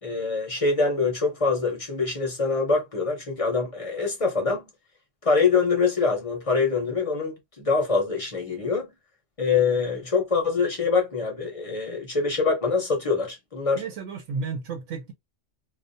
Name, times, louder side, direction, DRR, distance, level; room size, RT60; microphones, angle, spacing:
voice 1, 0.0-4.6 5.2-8.9 9.4-13.8, left 4 dB, 35° left, 0.6 m, -24 dB
voice 2, 13.8-15.1, right 4 dB, 80° right, 1.0 m, -32 dB
2.4 x 2.2 x 2.5 m
omnidirectional pair, 1.3 m